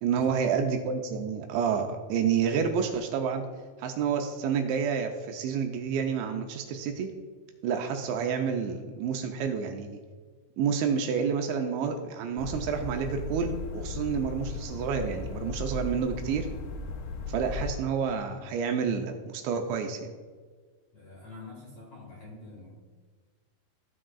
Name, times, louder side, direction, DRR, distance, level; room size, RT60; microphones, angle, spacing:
voice 1, 0.0-3.4 3.8-7.1 7.6-10.0 10.6-16.5 17.3-20.1, right 6 dB, 85° right, 4 dB, 2.8 m, -29 dB
sound 1, 12.4-17.7, left 3 dB, 80° left, 2.6 m, -36 dB
voice 2, 20.9-22.7, left 3 dB, 60° left, -4 dB, 1.9 m, -46 dB
15.5 x 6.2 x 2.3 m, 1.5 s
omnidirectional pair, 5.5 m